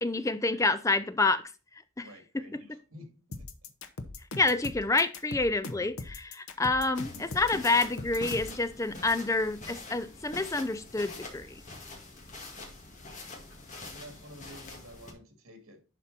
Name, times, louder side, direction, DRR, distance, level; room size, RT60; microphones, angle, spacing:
voice 1, 0.0-1.4 2.0-2.1 2.5-2.6 4.4-11.6, left 3 dB, 15° left, 0.4 m, -28 dB
voice 2, 2.0-3.7 13.8-15.8, equal, 80° right, 2.8 m, -51 dB
sound 1, 3.3-8.6, left 2 dB, 75° left, 1.0 m, -40 dB
sound 2, 6.9-15.1, left 2 dB, 35° left, 1.9 m, -45 dB
11.0 x 4.4 x 4.3 m
head